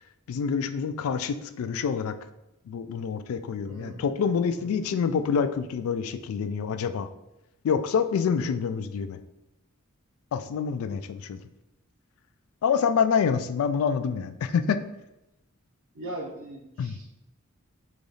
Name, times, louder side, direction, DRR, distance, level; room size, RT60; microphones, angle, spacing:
voice 1, 0.3-2.1 2.7-7.1 7.6-9.2 10.3-11.4 12.6-14.8 16.8-16.9, left 6 dB, 80° left, 13 dB, 0.3 m, -27 dB
voice 2, 3.7-4.1 4.5-4.8 15.9-17.0, right 1 dB, 70° right, -3 dB, 0.6 m, -39 dB
3.3 x 2.3 x 3.9 m, 0.92 s
head